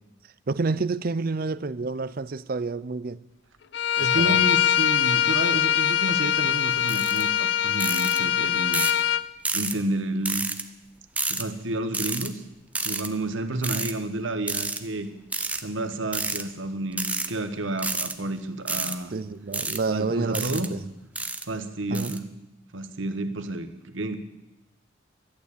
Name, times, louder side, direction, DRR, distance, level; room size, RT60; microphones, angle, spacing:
voice 1, 0.5-3.2 4.2-4.4 19.1-20.8 21.9-22.1, right 4 dB, 50° right, 0.5 m, -29 dB
Bowed string instrument, 3.7-9.2, left 10 dB, 60° left, 0.5 m, -23 dB
voice 2, 4.0-8.8 9.5-10.5 11.3-12.4 12.8-15.1 15.6-19.1 19.9-20.7 21.5-22.2 22.7-24.2, right 1 dB, 85° right, 1.2 m, -30 dB
Mechanic rattle, 6.9-7.2 7.8-8.2 8.7-9.0 9.4-9.7 10.2-10.6 11.2-11.4 11.9-12.3 12.7-13.1 13.6-13.9 14.5-14.8 15.3-15.6 16.1-16.4 16.9-17.3 17.8-18.1 18.7-19.0 19.5-19.8 20.3-20.7 21.2-21.4 21.9-22.2, right 3 dB, 10° right, 0.6 m, -29 dB
12.0 x 11.0 x 8.5 m
head